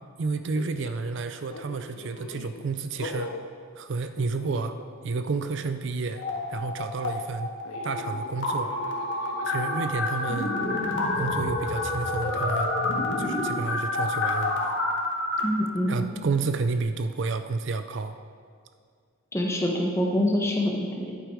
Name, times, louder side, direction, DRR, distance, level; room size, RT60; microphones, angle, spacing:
voice 1, 0.2-3.3 3.8-4.8 5.0-7.5 7.8-8.7 9.4-10.5 11.2-12.7 13.2-14.8 15.9-18.2, right 4 dB, 55° right, 9 dB, 0.4 m, -30 dB
sound 1, 0.5-1.0 1.5-2.7 3.0-3.5 4.2-5.1 5.3-5.6 7.6-12.5, left 2 dB, 85° left, 0.8 m, -42 dB
sound 2, 6.2-7.1 7.4-15.4, left 2 dB, 55° left, 1.6 m, -28 dB
voice 2, 15.4-16.0 19.3-21.1, left 1 dB, 15° left, 0 dB, 1.1 m, -25 dB
11.0 x 8.3 x 4.8 m, 2.1 s
head